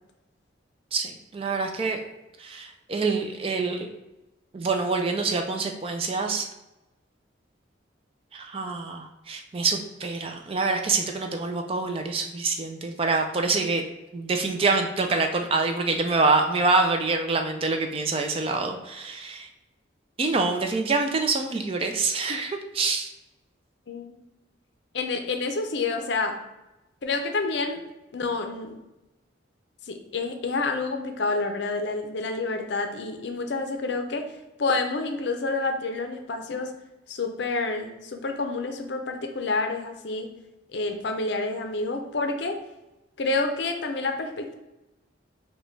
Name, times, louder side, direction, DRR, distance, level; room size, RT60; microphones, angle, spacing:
voice 1, 0.9-2.0 2.4-3.9 4.5-6.5 8.3-13.8 14.1-19.5 20.2-23.1, right 3 dB, 30° right, 4 dB, 0.3 m, -26 dB
voice 2, 23.9-24.2 24.9-26.4 27.0-27.8 28.1-28.8 29.9-34.3 34.6-36.7 37.1-40.3 40.7-42.6 43.2-44.5, left 3 dB, 60° left, 5 dB, 0.5 m, -28 dB
5.0 x 2.2 x 3.2 m, 0.98 s
head